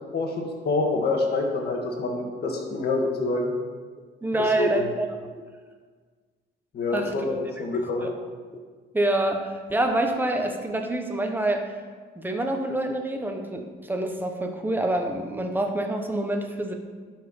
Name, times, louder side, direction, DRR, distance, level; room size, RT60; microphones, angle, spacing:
voice 1, 0.1-3.5 4.4-4.8 6.7-8.1, left 3 dB, 55° left, 0 dB, 1.8 m, -27 dB
voice 2, 4.2-5.1 5.3-5.4 6.9-7.1 8.9-11.7 12.2-16.7, right 1 dB, 10° right, 4 dB, 1.1 m, -26 dB
11.5 x 4.7 x 5.5 m, 1.5 s
cardioid pair, 115°, 20 cm